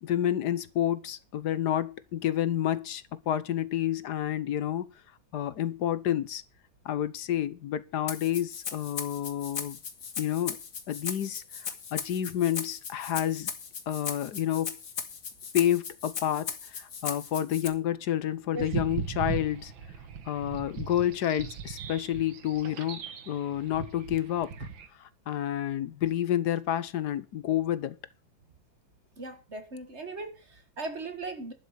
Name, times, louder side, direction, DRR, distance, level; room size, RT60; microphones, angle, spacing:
voice 1, 0.0-4.9 5.3-6.4 6.8-9.8 10.2-10.6 10.9-13.5 13.9-14.8 15.5-19.7 20.3-24.5 25.0-28.0, left 11 dB, 65° left, 1.3 m, -29 dB
Rattle (instrument), 8.1-17.7, left 6 dB, 45° left, 1.9 m, -38 dB
sound 1, 18.5-24.9, right 7 dB, 80° right, 2.0 m, -38 dB
voice 2, 29.2-31.5, right 3 dB, 35° right, 2.0 m, -38 dB
11.5 x 6.0 x 8.2 m
omnidirectional pair, 2.1 m